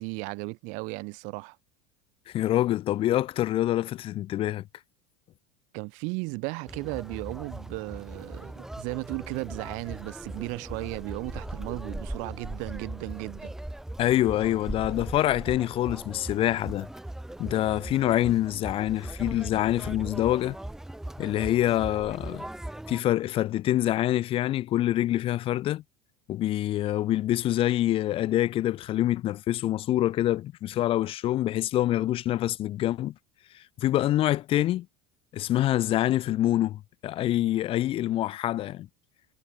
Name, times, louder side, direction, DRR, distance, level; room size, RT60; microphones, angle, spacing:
voice 1, 0.0-1.6 5.7-13.5, right 31 dB, 60° right, 0.7 m, -35 dB
voice 2, 2.3-4.6 14.0-16.9 17.4-20.6 21.2-22.4 22.9-25.8 26.3-33.1 33.5-34.9 35.3-38.9, left 13 dB, 40° left, 1.0 m, -26 dB
Conversation, 6.7-23.0, right 1 dB, 5° right, 0.7 m, -39 dB
supercardioid pair, 140°, 14 cm